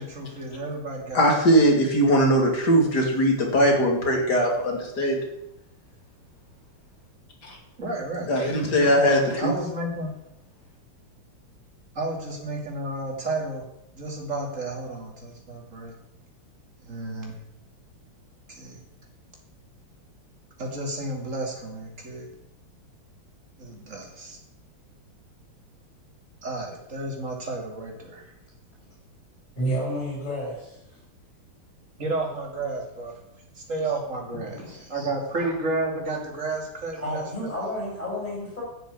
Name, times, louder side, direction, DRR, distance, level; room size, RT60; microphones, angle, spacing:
voice 1, 0.0-1.2 7.8-8.3 9.0-10.1 11.9-13.6 14.0-15.9 16.8-17.3 18.5-18.8 20.6-22.3 23.6-24.4 26.4-28.3 32.0-33.1 33.7-37.5, right 2 dB, 35° right, 0 dB, 2.9 m, -31 dB
voice 2, 1.1-5.2 7.5-7.6 8.3-9.5, equal, 50° left, 1 dB, 3.1 m, -20 dB
voice 3, 29.6-30.6 34.9-35.1 35.4-35.5 37.0-38.6, equal, 20° left, -5 dB, 6.2 m, -30 dB
11.0 x 6.8 x 8.3 m, 0.81 s
omnidirectional pair, 2.4 m